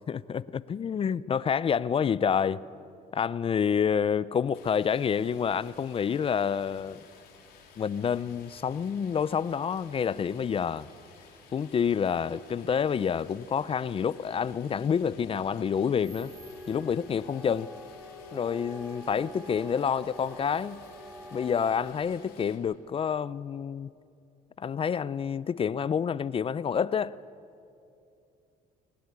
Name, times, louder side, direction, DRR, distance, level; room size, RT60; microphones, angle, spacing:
voice 1, 0.1-2.6 3.1-7.0 7.8-10.9 11.5-16.3 16.7-17.7 18.3-20.8 21.3-23.9 24.6-27.2, left 7 dB, 35° left, 0.5 m, -28 dB
Stream, 4.5-22.5, left 6 dB, 70° left, 4.1 m, -55 dB
sound 1, 16.0-21.9, equal, 5° right, 1.9 m, -46 dB
20.5 x 19.5 x 9.7 m
cardioid pair, 110°, 17 cm